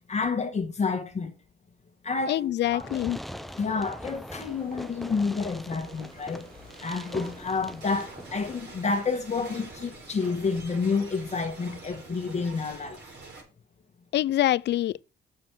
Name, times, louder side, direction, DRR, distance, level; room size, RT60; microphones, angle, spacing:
voice 1, 0.1-1.3 2.0-2.9 3.6-6.4 6.8-13.0, left 4 dB, 35° left, 1.4 m, -29 dB
voice 2, 2.3-3.2 14.1-15.0, left 13 dB, 60° left, 0.4 m, -25 dB
sound 1, 2.4-12.1, right 2 dB, 45° right, 4.7 m, -56 dB
Fireworks, 2.6-8.6, equal, ahead, 0.4 m, -42 dB
sound 2, 5.7-13.4, right 3 dB, 60° right, 3.9 m, -47 dB
7.5 x 6.8 x 4.6 m
cardioid pair, 90°, 20 cm